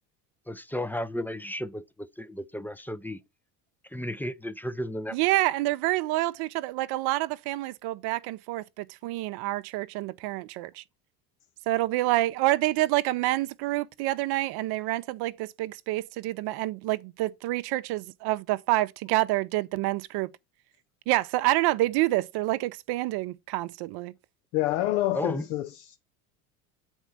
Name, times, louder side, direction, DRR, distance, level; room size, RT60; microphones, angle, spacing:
voice 1, 0.5-3.2 3.9-5.2 25.1-25.4, left 1 dB, 5° left, 0.5 m, -34 dB
voice 2, 5.1-10.8 11.7-20.3 21.1-24.1, right 17 dB, 60° right, 0.7 m, -27 dB
voice 3, 24.5-26.0, left 15 dB, 70° left, 0.8 m, -27 dB
8.0 x 4.4 x 5.9 m
hypercardioid pair, 80°, 43 cm